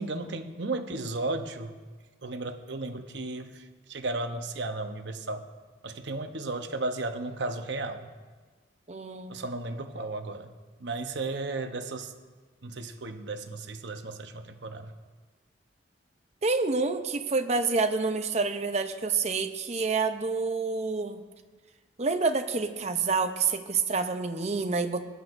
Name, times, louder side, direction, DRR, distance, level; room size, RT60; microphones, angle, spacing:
voice 1, 0.0-1.7 2.2-5.4 5.8-8.1 9.3-10.5 10.8-12.1 12.6-14.9, right 2 dB, 70° right, 7 dB, 0.9 m, -34 dB
voice 2, 8.9-9.4 16.4-21.2 22.0-25.0, right 4 dB, 35° right, 7 dB, 0.7 m, -28 dB
19.5 x 11.0 x 2.6 m, 1.4 s
head